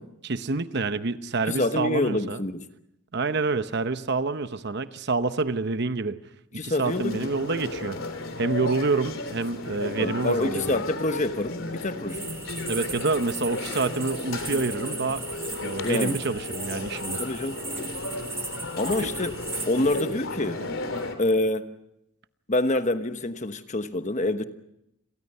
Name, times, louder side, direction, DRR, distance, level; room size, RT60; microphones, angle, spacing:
voice 1, 0.2-2.4 3.1-6.2 6.6-8.0 8.4-10.8 12.7-15.2 15.6-17.2 19.0-19.1, right 3 dB, 50° right, 0.9 m, -27 dB
voice 2, 1.4-2.7 6.5-7.3 10.0-12.2 15.8-16.2 17.2-17.6 18.8-19.4 19.7-20.6 21.2-21.7 22.5-24.4, left 2 dB, 35° left, 1.1 m, -26 dB
sound 1, 6.8-21.1, left 2 dB, 60° left, 3.4 m, -34 dB
sound 2, 12.1-20.0, right 4 dB, 15° right, 2.0 m, -37 dB
29.5 x 23.5 x 5.6 m
head